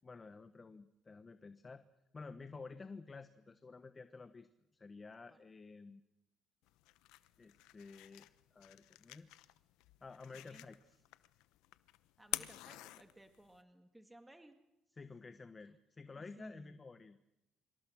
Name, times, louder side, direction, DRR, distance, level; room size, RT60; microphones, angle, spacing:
voice 1, 0.0-1.8 2.1-6.0 7.4-9.5 10.0-10.8 15.0-17.2, left 4 dB, 25° left, 10 dB, 1.2 m, -52 dB
sound 1, 6.6-13.6, left 17 dB, 90° left, 0.9 m, -49 dB
voice 2, 10.3-10.6 12.2-14.6 16.1-16.8, right 1 dB, 10° right, 7 dB, 2.2 m, -58 dB
25.5 x 25.5 x 6.3 m, 0.91 s
cardioid pair, 105°, 0 cm